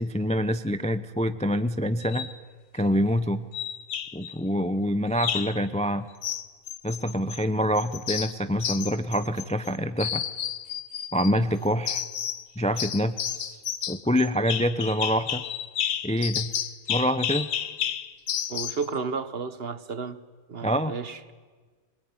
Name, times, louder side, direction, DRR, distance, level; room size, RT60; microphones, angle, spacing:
voice 1, 0.0-2.3 2.7-3.4 4.1-6.1 6.8-10.2 11.1-12.0 12.6-13.6 13.9-15.4 16.0-16.5 16.9-17.5 20.6-21.0, equal, 10° left, 0.4 m, -26 dB
sound 1, 2.0-2.4 3.5-4.3 5.2-5.6 6.2-7.4 7.8-9.7 10.0-11.3 11.9-12.5 12.8-18.9, left 9 dB, 90° left, 1.5 m, -31 dB
voice 2, 18.5-20.2 20.5-21.3, right 5 dB, 45° right, 1.1 m, -32 dB
25.0 x 21.5 x 9.6 m
omnidirectional pair, 1.6 m